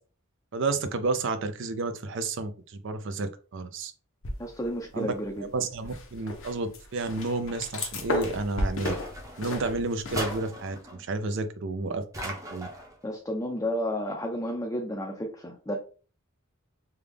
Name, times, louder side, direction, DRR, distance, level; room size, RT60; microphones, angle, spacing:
voice 1, 0.5-3.9 4.9-8.9 9.4-12.7, right 3 dB, 65° right, 0.5 m, -31 dB
sound 1, 4.2-4.9 5.3-10.4, left 1 dB, 65° left, 0.8 m, -34 dB
voice 2, 4.4-5.5 13.0-15.8, equal, 15° left, 0.5 m, -32 dB
sound 2, 8.8-9.6 10.1-11.0 12.1-12.9, right 1 dB, 15° right, 0.7 m, -38 dB
3.4 x 2.3 x 3.4 m
head